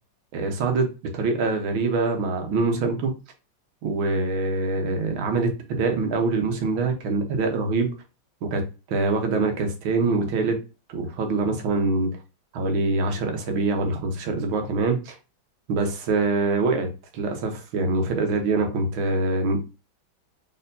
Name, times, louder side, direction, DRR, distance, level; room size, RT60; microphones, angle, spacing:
voice 1, 0.3-0.9 1.1-3.1 3.8-7.9 8.4-8.6 8.9-10.6 10.9-12.1 12.5-15.2 15.7-16.9 17.1-19.6, right 3 dB, 85° right, 1.9 m, -24 dB
4.4 x 4.4 x 2.7 m
omnidirectional pair, 2.1 m